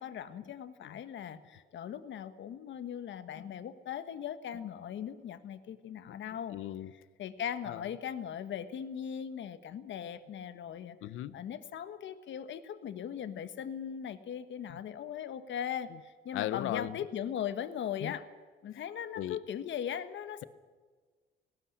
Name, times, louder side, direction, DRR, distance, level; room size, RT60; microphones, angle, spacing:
voice 1, 0.0-6.6 7.2-11.0 11.3-18.2 18.6-20.4, left 9 dB, 70° left, 1.4 m, -39 dB
voice 2, 6.5-6.9 7.7-7.9 11.0-11.4 14.7-14.8 16.3-17.0 18.0-18.1 19.2-19.4, left 13 dB, 85° left, 0.8 m, -37 dB
18.0 x 17.5 x 9.9 m
cardioid pair, 90°, 20 cm